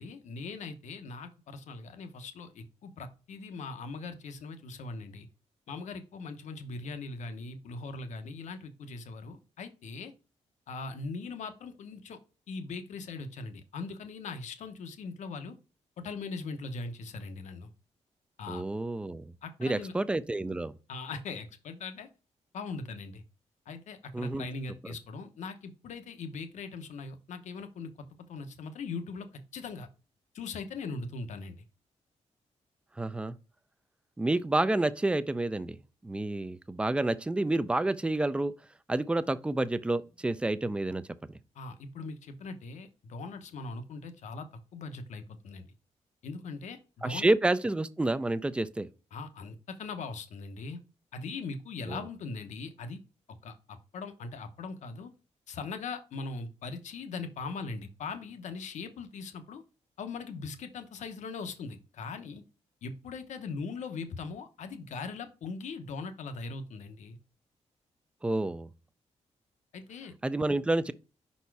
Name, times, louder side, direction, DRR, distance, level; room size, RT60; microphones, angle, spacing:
voice 1, 0.0-5.3 5.7-10.1 10.7-12.2 12.5-15.5 16.0-17.7 18.4-18.6 19.4-19.9 20.9-22.1 22.5-23.2 23.7-29.9 30.3-31.6 41.5-44.5 44.7-45.6 46.2-47.3 49.1-50.8 51.1-53.0 53.4-55.1 55.5-59.6 60.0-62.4 62.8-67.2 69.7-70.1, left 4 dB, 80° left, 0.9 m, -40 dB
voice 2, 18.5-19.3 19.6-20.7 24.1-24.5 33.0-33.4 34.2-35.8 36.0-38.5 38.9-41.0 47.0-48.9 51.9-52.0 68.2-68.7 70.2-70.9, right 2 dB, 10° right, 0.3 m, -29 dB
5.6 x 4.2 x 4.6 m
wide cardioid pair, 170°, 12 cm